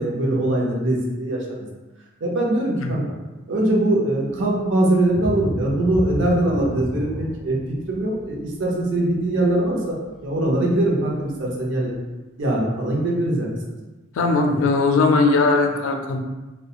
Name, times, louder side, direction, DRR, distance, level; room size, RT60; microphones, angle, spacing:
voice 1, 0.0-1.7 2.2-3.0 3.5-7.6 7.9-11.9 12.4-13.6, right 1 dB, 65° right, -2 dB, 0.6 m, -22 dB
sound 1, 5.1-10.5 11.0-11.1 11.6-11.7, equal, ahead, 0.4 m, -31 dB
voice 2, 14.2-16.2, left 3 dB, 85° left, 3 dB, 0.4 m, -19 dB
2.4 x 2.1 x 2.8 m, 1.2 s
head